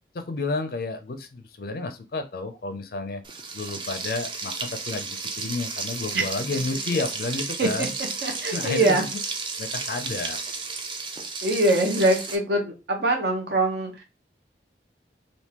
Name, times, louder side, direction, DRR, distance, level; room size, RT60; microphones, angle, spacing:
voice 1, 0.1-3.2 3.5-7.9 8.5-9.2 9.6-10.4, left 3 dB, 55° left, 8 dB, 0.4 m, -31 dB
Frying (food), 3.2-12.4, right 4 dB, 30° right, 0.4 m, -33 dB
voice 2, 8.2-9.1 11.4-14.0, right 1 dB, 70° right, 2 dB, 0.9 m, -23 dB
3.5 x 2.6 x 2.8 m, 0.28 s
head